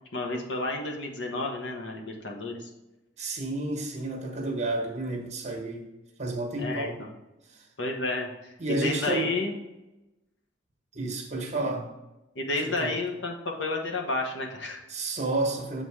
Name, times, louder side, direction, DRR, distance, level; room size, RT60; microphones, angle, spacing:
voice 1, 0.1-2.7 6.6-7.1 7.8-8.5 8.8-9.5 12.3-14.8, left 2 dB, 90° left, 1 dB, 1.2 m, -31 dB
voice 2, 3.2-5.9 6.2-7.0 7.5-7.7 8.6-9.3 10.9-11.9 12.6-13.0 14.9-15.8, right 2 dB, 40° right, 2 dB, 1.3 m, -31 dB
7.7 x 3.9 x 4.8 m, 0.98 s
head